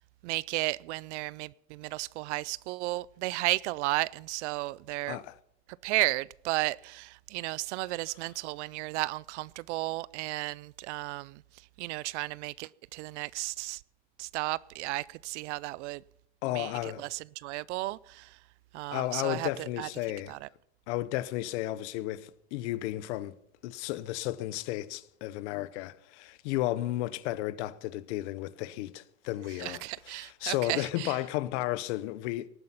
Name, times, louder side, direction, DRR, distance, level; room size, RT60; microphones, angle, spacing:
voice 1, 0.2-5.2 5.8-11.4 11.8-13.8 14.2-16.0 16.5-18.4 18.7-19.9 20.3-20.5 29.6-31.2, right 20 dB, 90° right, 0.5 m, -34 dB
voice 2, 16.4-17.0 18.9-20.3 20.9-23.4 23.6-32.5, left 15 dB, 80° left, 0.9 m, -33 dB
19.0 x 9.6 x 5.8 m
supercardioid pair, 130°, 34 cm